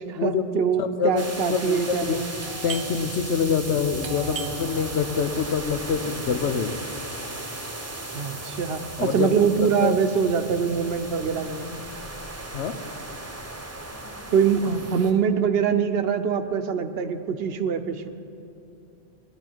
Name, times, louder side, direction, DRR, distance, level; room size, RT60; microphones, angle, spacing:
voice 1, 0.0-2.3 8.1-11.7 14.3-18.1, right 7 dB, 65° right, 9 dB, 0.9 m, -24 dB
voice 2, 0.8-1.2 1.5-2.3 2.6-6.8 9.0-10.0 12.5-12.7, left 6 dB, 85° left, 9 dB, 1.0 m, -26 dB
sound 1, 1.2-15.1, right 2 dB, 15° right, 0.8 m, -36 dB
Doorbell, 2.4-7.8, right 6 dB, 85° right, 1.1 m, -42 dB
18.0 x 11.5 x 4.5 m, 2.8 s
omnidirectional pair, 1.1 m